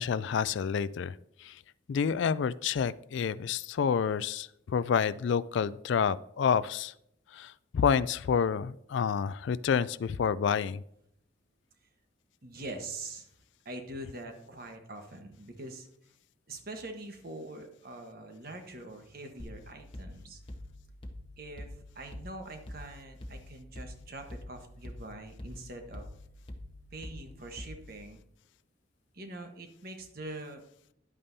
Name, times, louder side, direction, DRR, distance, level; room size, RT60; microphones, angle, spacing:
voice 1, 0.0-1.6 1.9-6.9 7.3-10.8, left 7 dB, 65° left, 17 dB, 0.3 m, -29 dB
voice 2, 12.4-13.3 13.6-15.9 16.5-20.4 21.4-26.1 26.9-28.2 29.1-30.6, right 2 dB, 50° right, 5 dB, 1.3 m, -44 dB
sound 1, 19.4-28.1, left 1 dB, 25° left, 0.9 m, -46 dB
11.0 x 8.6 x 2.7 m, 0.73 s
head